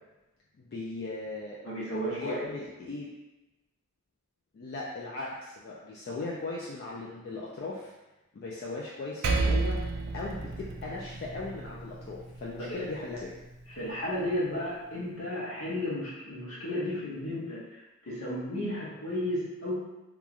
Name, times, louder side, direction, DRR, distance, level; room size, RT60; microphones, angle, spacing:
voice 1, 0.6-1.6 2.1-3.1 4.5-7.9 8.3-9.8 10.1-13.4, left 3 dB, 45° left, -5 dB, 0.3 m, -38 dB
voice 2, 1.6-2.4 12.7-12.8 13.7-19.7, left 1 dB, 70° left, -7 dB, 0.7 m, -33 dB
Percussion, 9.2-14.0, right 3 dB, 50° right, 0.3 m, -33 dB
2.9 x 2.3 x 2.4 m, 1.0 s
head